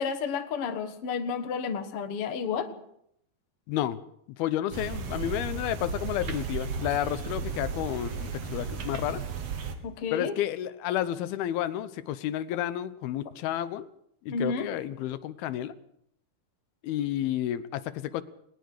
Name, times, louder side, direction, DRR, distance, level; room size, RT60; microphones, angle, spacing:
voice 1, 0.0-2.8 9.8-10.4 14.3-14.7, left 5 dB, 55° left, 7 dB, 1.8 m, -31 dB
voice 2, 3.7-4.0 4.4-9.2 10.1-13.9 14.2-15.8 16.8-18.2, left 12 dB, 90° left, 14 dB, 2.8 m, -31 dB
sound 1, 4.7-9.8, right 5 dB, 50° right, 2.5 m, -34 dB
20.0 x 20.0 x 6.6 m, 0.72 s
omnidirectional pair, 4.2 m